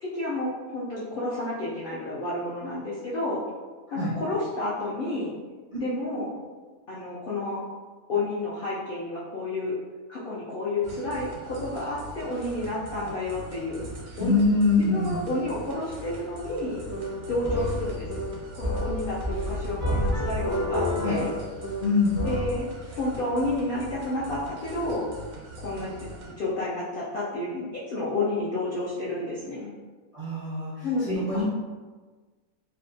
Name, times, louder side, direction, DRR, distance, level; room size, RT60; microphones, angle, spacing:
voice 1, 0.0-3.4 3.9-5.3 5.8-6.3 6.9-7.6 8.1-9.8 10.1-13.8 14.2-14.3 14.9-16.8 17.2-18.2 18.5-21.3 22.2-22.7 22.9-25.0 25.6-25.9 26.4-29.7 30.8-31.5, left 2 dB, 80° left, -8 dB, 0.4 m, -30 dB
sound 1, 10.8-26.3, right 1 dB, 90° right, 1.1 m, -42 dB
voice 2, 14.2-15.2 21.0-21.2 21.8-22.2 30.1-31.4, left 3 dB, 50° right, -10 dB, 0.4 m, -24 dB
sound 2, 16.6-22.6, left 1 dB, 25° left, 0.4 m, -29 dB
2.7 x 2.1 x 2.6 m, 1.4 s
omnidirectional pair, 1.6 m